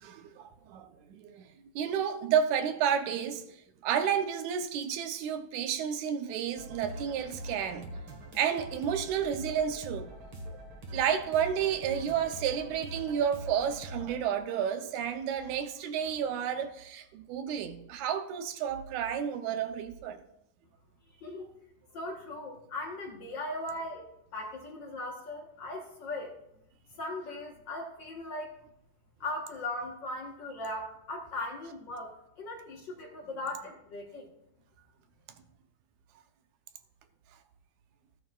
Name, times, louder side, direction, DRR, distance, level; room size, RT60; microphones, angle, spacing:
voice 1, 0.0-1.5 1.8-3.6 3.8-8.0 8.4-10.1 10.9-20.2, right 8 dB, 75° right, 2.0 m, -31 dB
sound 1, 6.5-14.2, equal, 50° right, 2.0 m, -43 dB
voice 2, 21.9-24.0 24.3-26.3 27.0-28.5 29.2-34.3, left 2 dB, 60° left, 1.2 m, -38 dB
15.5 x 9.2 x 2.4 m
omnidirectional pair, 3.6 m